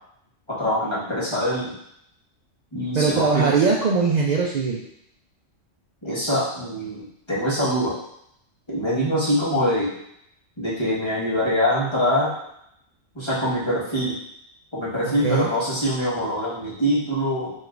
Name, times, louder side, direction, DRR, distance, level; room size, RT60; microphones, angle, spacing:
voice 1, 0.5-1.8 2.7-3.6 6.0-8.0 8.7-9.9 10.6-12.3 13.1-14.2 14.7-17.5, equal, 25° left, -9 dB, 1.4 m, -24 dB
voice 2, 2.9-4.8 15.0-15.5, right 5 dB, 80° right, -3 dB, 0.4 m, -21 dB
5.0 x 3.0 x 2.5 m, 0.75 s
omnidirectional pair, 1.3 m